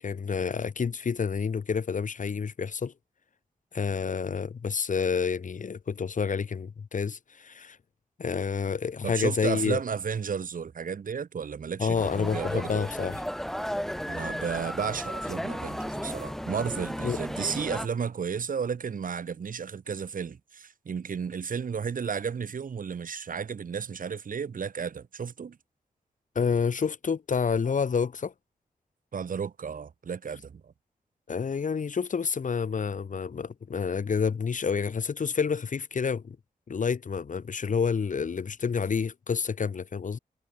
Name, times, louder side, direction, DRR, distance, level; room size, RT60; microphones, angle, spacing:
voice 1, 0.0-2.9 3.7-7.8 8.2-9.8 11.8-13.2 17.0-17.2 26.3-28.3 31.3-36.4 36.7-40.2, left 6 dB, 60° left, 3.2 m, -29 dB
voice 2, 9.0-12.8 14.1-25.6 29.1-30.7, right 6 dB, 65° right, 2.8 m, -33 dB
sound 1, 11.9-17.9, equal, ahead, 3.2 m, -34 dB
wide cardioid pair, 140°, 15 cm